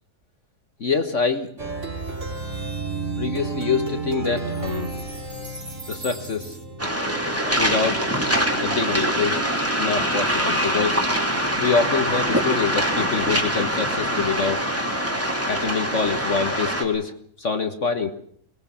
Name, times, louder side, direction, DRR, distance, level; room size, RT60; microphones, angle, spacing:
voice 1, 0.8-1.5 3.2-4.9 5.9-6.6 7.5-8.1 8.6-9.5 9.8-11.0 11.6-14.7 15.5-18.1, left 5 dB, 45° left, 8 dB, 1.6 m, -25 dB
Plucked string instrument, 1.6-6.9, right 3 dB, 45° right, 4.0 m, -31 dB
Waves surf, 6.8-16.8, equal, 10° right, 3.1 m, -24 dB
23.0 x 21.0 x 7.1 m, 0.64 s
omnidirectional pair, 1.8 m